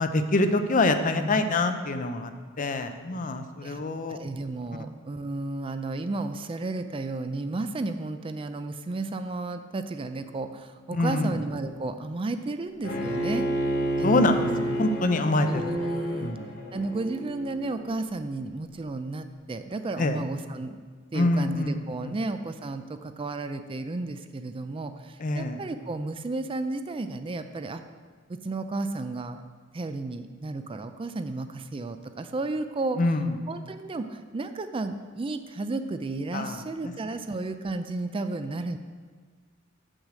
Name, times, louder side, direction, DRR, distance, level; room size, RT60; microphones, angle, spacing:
voice 1, 0.0-2.3 2.6-4.2 10.9-11.4 14.0-14.5 14.8-15.7 16.2-16.4 20.0-20.2 21.1-22.1 25.2-25.6 33.0-33.3 36.3-36.6, left 2 dB, 40° left, 8 dB, 0.6 m, -25 dB
voice 2, 1.1-1.4 3.6-3.8 4.1-13.5 14.0-14.7 15.5-16.3 16.7-20.8 21.1-27.8 28.3-29.4 29.7-33.0 33.5-38.8, right 2 dB, 25° right, 9 dB, 0.4 m, -33 dB
Bowed string instrument, 12.8-17.9, equal, 55° left, 1.7 m, -30 dB
6.5 x 6.3 x 7.5 m, 1.5 s
head